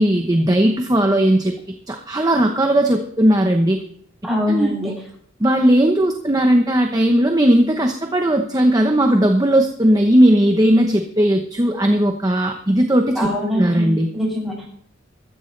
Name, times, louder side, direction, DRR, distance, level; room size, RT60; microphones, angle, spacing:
voice 1, 0.0-1.5 1.9-3.8 4.5-4.9 5.4-14.1, right 1 dB, 20° right, 4 dB, 0.9 m, -17 dB
voice 2, 4.2-4.8 13.1-14.7, left 1 dB, ahead, -4 dB, 7.1 m, -23 dB
16.0 x 14.0 x 3.3 m, 0.63 s
head